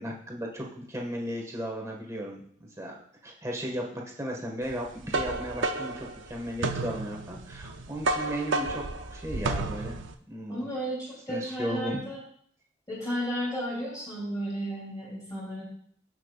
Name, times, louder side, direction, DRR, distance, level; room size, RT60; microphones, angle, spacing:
voice 1, 0.0-10.7 11.3-12.0, equal, 15° right, -1 dB, 1.7 m, -36 dB
sound 1, 4.7-10.1, right 2 dB, 80° right, 0.7 m, -31 dB
voice 2, 10.5-12.2 12.9-15.6, equal, 20° left, -8 dB, 3.2 m, -33 dB
17.5 x 6.1 x 2.5 m, 0.62 s
head